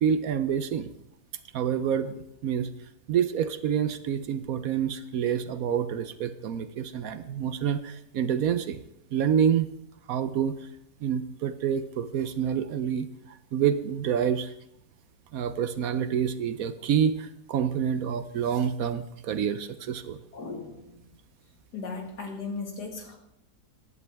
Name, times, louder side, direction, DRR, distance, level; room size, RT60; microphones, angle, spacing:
voice 1, 0.0-0.9 1.5-2.7 3.1-8.8 9.1-9.7 10.1-10.6 11.0-14.5 15.3-20.2, right 8 dB, 65° right, 11 dB, 1.0 m, -27 dB
voice 2, 20.3-21.1 21.7-23.2, left 4 dB, 80° left, 2 dB, 2.5 m, -37 dB
16.0 x 11.0 x 3.4 m, 0.81 s
omnidirectional pair, 1.7 m